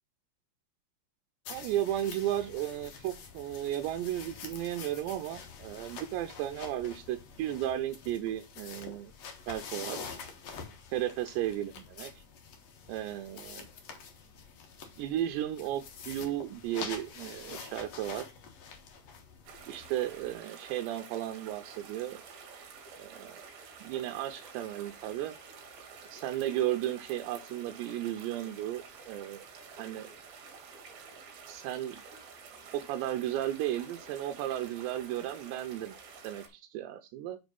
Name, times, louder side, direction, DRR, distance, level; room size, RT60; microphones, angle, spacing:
sound 1, 1.4-20.4, left 5 dB, 85° left, 1.4 m, -46 dB
voice 1, 1.5-9.1 9.5-10.1 10.9-12.1 12.9-13.7 15.0-18.3 19.7-22.2 23.0-23.4 23.8-25.4 26.1-29.4 29.8-30.1 31.5-32.0 32.7-36.0 36.2-37.4, right 12 dB, 80° right, 6 dB, 2.7 m, -34 dB
sound 2, 19.4-36.5, right 5 dB, 60° right, 2.6 m, -50 dB
6.1 x 5.1 x 5.2 m, 0.26 s
omnidirectional pair, 5.2 m